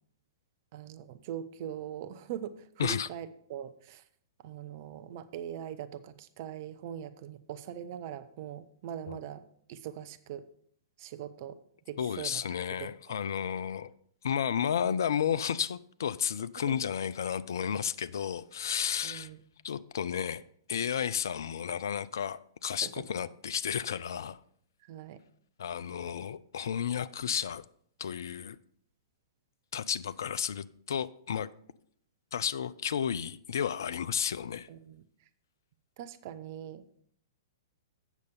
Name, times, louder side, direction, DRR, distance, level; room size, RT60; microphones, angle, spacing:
voice 1, 0.7-4.0 4.4-9.4 9.7-10.5 11.0-11.6 11.9-12.4 12.8-12.9 16.7-16.8 19.0-19.4 22.8-23.0 24.9-25.2 34.7-35.0 36.0-37.0, right 10 dB, 45° right, 0.6 m, -41 dB
voice 2, 12.0-13.9 14.2-19.3 19.6-20.4 20.7-24.4 25.6-27.6 28.0-28.6 29.7-31.5 32.3-34.7, left 8 dB, 60° left, 0.4 m, -32 dB
8.3 x 6.5 x 5.3 m
figure-of-eight pair, 110°, 2 cm